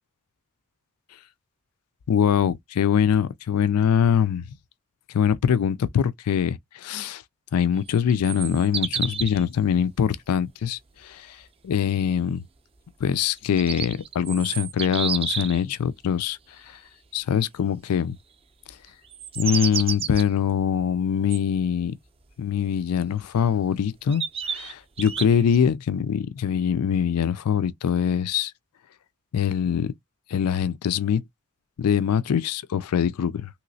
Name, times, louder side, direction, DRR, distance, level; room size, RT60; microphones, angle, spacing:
voice 1, 2.1-4.4 5.1-7.2 7.5-11.4 11.6-12.4 13.0-16.4 17.1-18.2 19.4-21.9 22.4-24.2 24.5-28.5 29.3-29.9 30.3-31.2 31.8-33.5, left 8 dB, 90° left, 0.4 m, -23 dB
sound 1, 7.8-9.4 13.3-15.6 19.0-20.2 21.3-21.4 23.2-23.3 24.1-25.6, right 7 dB, 25° right, 0.4 m, -30 dB
3.1 x 3.0 x 2.6 m
head